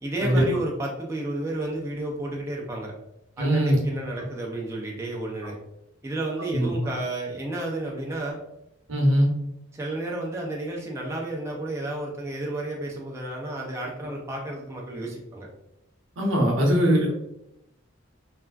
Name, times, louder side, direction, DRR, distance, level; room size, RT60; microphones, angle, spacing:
voice 1, 0.0-2.9 3.4-5.5 6.0-8.4 9.7-15.5, right 2 dB, 15° right, -2 dB, 0.4 m, -31 dB
voice 2, 3.4-3.8 6.5-6.7 8.9-9.3 16.2-17.1, equal, 80° right, 0 dB, 0.8 m, -21 dB
3.3 x 2.4 x 2.3 m, 0.82 s
head